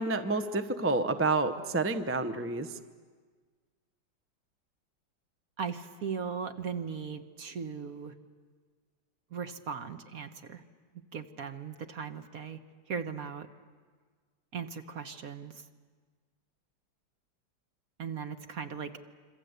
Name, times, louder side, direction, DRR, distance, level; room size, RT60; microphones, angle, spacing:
voice 1, 0.0-2.8, right 3 dB, 15° right, 8 dB, 0.5 m, -29 dB
voice 2, 5.6-8.1 9.3-10.6 11.1-12.6 12.9-13.5 14.5-15.6 18.0-18.9, right 6 dB, 50° right, 8 dB, 1.5 m, -38 dB
26.5 x 26.5 x 8.1 m, 1.5 s
omnidirectional pair, 2.1 m